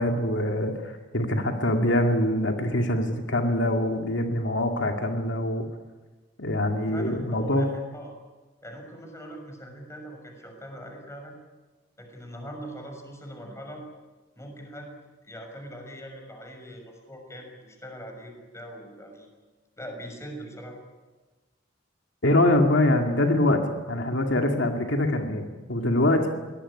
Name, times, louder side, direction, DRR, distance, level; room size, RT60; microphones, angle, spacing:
voice 1, 0.0-5.7 6.4-7.7 22.2-26.3, left 1 dB, 85° left, 3 dB, 2.3 m, -24 dB
voice 2, 6.8-7.6 7.9-8.1 8.6-11.3 12.0-13.8 14.4-14.9 15.2-19.3 19.8-20.8, equal, 15° left, 3 dB, 6.3 m, -41 dB
23.5 x 18.5 x 9.8 m, 1.2 s
head